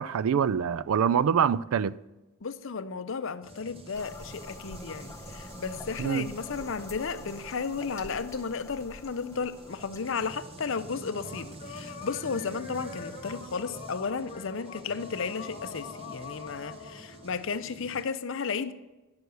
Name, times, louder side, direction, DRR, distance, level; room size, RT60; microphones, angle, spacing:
voice 1, 0.0-1.9 6.0-6.3, right 7 dB, 75° right, 0.3 m, -25 dB
voice 2, 2.4-18.7, left 5 dB, 60° left, 0.5 m, -34 dB
sound 1, 3.4-17.7, left 4 dB, 30° left, 1.0 m, -47 dB
sound 2, 3.4-18.1, right 2 dB, 25° right, 0.6 m, -48 dB
sound 3, 3.9-10.5, left 2 dB, 15° left, 0.7 m, -46 dB
10.5 x 6.3 x 6.8 m
head